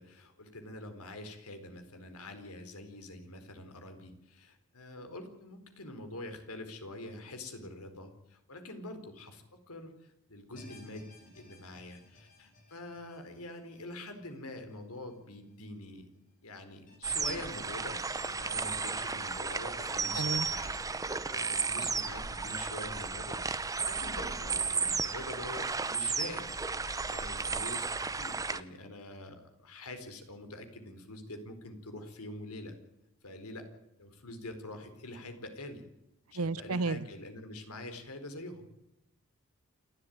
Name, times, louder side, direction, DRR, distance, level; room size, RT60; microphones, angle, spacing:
voice 1, 0.0-16.1 16.4-20.7 21.0-26.5 26.7-32.7 33.2-33.7 34.0-35.8 36.3-38.6, left 2 dB, 85° left, 7 dB, 4.3 m, -45 dB
sound 1, 10.6-15.8 16.1-16.2 16.9-17.0, left 2 dB, 40° left, 7.1 m, -59 dB
sound 2, 17.0-28.6, right 4 dB, 15° right, 0.8 m, -34 dB
voice 2, 20.2-20.5 36.4-37.0, right 3 dB, 75° right, 19 dB, 0.7 m, -32 dB
28.5 x 13.0 x 9.4 m, 0.90 s
head